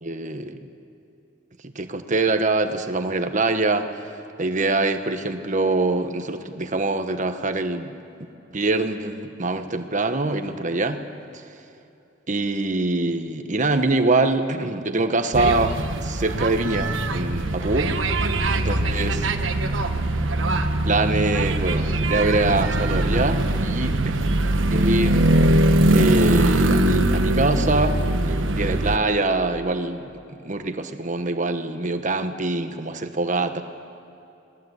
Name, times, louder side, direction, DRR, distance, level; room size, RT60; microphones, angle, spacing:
voice 1, 0.0-0.7 1.6-3.9 4.4-7.9 8.5-11.0 12.3-17.9 18.5-19.2 20.8-24.1 24.7-25.3 25.9-30.1 30.4-33.6, right 2 dB, 40° right, 8 dB, 1.3 m, -24 dB
sound 1, 15.3-29.0, right 1 dB, 90° right, 1.3 m, -21 dB
25.5 x 19.5 x 8.2 m, 2.7 s
head